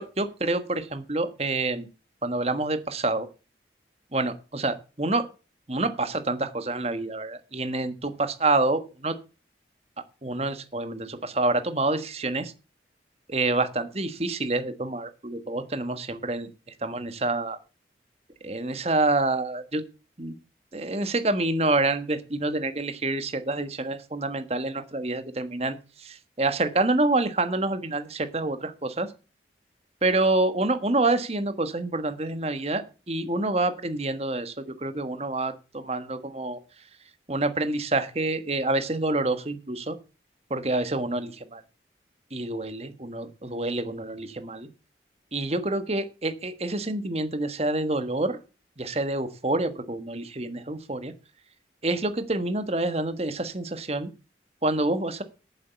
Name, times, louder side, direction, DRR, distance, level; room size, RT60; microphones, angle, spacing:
voice 1, 0.0-1.9 2.2-3.3 4.1-5.2 5.7-9.1 10.2-12.5 13.3-16.5 16.8-17.6 18.4-19.8 20.2-20.4 20.7-29.1 30.0-34.5 34.8-36.6 37.3-39.9 40.5-41.6 42.3-44.7 45.3-48.4 48.8-51.1 51.8-54.1 54.6-55.2, right 2 dB, 35° right, 10 dB, 1.4 m, -27 dB
8.9 x 7.4 x 8.1 m, 0.33 s
head